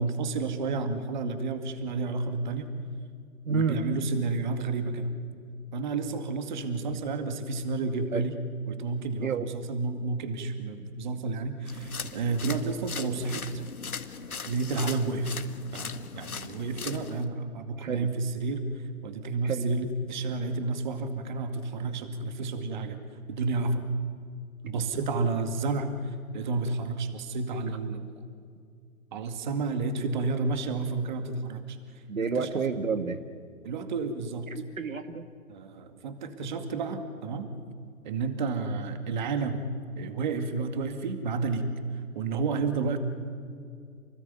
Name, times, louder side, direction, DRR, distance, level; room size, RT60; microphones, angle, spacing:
voice 1, 0.0-2.7 3.5-5.1 5.7-8.4 8.7-13.5 14.5-15.4 15.7-18.7 19.0-23.0 23.3-23.8 24.6-28.1 29.1-31.8 32.2-32.5 33.6-34.5 35.5-37.5 38.0-39.7 40.0-41.7 42.2-43.0, right 3 dB, 30° right, 8 dB, 2.2 m, -31 dB
voice 2, 3.4-3.8 8.1-8.2 9.2-9.5 17.8-18.1 19.4-19.7 32.1-33.2 34.5-35.3, right 5 dB, 65° right, 9 dB, 1.9 m, -29 dB
sound 1, 11.7-17.2, left 5 dB, 75° left, 1.9 m, -39 dB
29.0 x 20.0 x 9.5 m, 2.3 s
hypercardioid pair, 155°, 43 cm